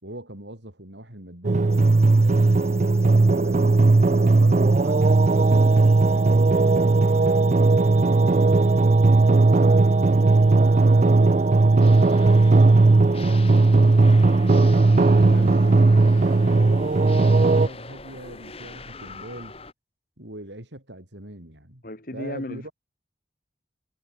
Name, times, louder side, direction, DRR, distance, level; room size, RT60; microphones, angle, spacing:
voice 1, 0.0-3.6 4.2-8.6 9.2-14.5 15.1-19.5 20.2-21.8 22.1-22.7, right 1 dB, 85° right, 7.5 m, -41 dB
sound 1, 1.4-17.7, right 3 dB, 40° right, 0.5 m, -17 dB
sound 2, 1.7-15.8 16.1-16.2, right 5 dB, 15° right, 5.2 m, -51 dB
sound 3, 11.8-19.7, left 3 dB, 35° left, 6.1 m, -42 dB
voice 2, 21.8-22.7, left 1 dB, 50° left, 4.0 m, -35 dB
head